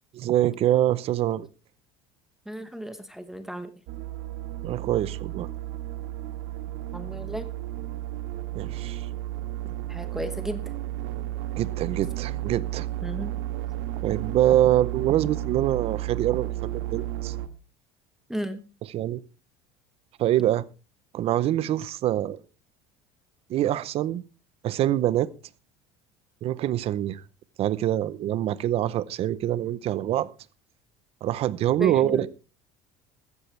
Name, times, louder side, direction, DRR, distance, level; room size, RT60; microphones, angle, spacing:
voice 1, 0.1-1.5 4.6-5.5 8.5-9.1 11.6-12.9 14.0-17.3 18.9-19.2 20.2-20.7 21.1-22.4 23.5-24.2 24.6-25.3 26.4-27.2 27.6-30.3 31.2-32.3, right 12 dB, 45° right, 0.7 m, -25 dB
voice 2, 2.5-3.7 6.9-7.5 9.9-10.6 13.0-13.4 18.3-18.6 31.8-32.3, right 1 dB, 5° right, 1.1 m, -34 dB
sound 1, 3.9-17.5, right 14 dB, 80° right, 1.4 m, -33 dB
15.0 x 13.5 x 3.3 m
cardioid pair, 145°, 15 cm